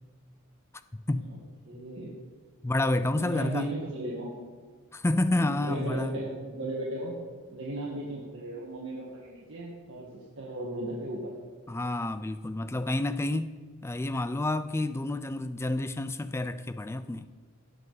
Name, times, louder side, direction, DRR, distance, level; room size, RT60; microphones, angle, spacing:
voice 1, 0.9-1.3 2.6-3.7 4.9-6.2 11.7-13.5 13.8-17.3, left 2 dB, 10° left, 0.3 m, -29 dB
voice 2, 1.7-2.1 3.1-4.3 5.3-7.2 7.5-11.3, right 1 dB, 60° right, 1.7 m, -36 dB
18.0 x 6.9 x 4.1 m
head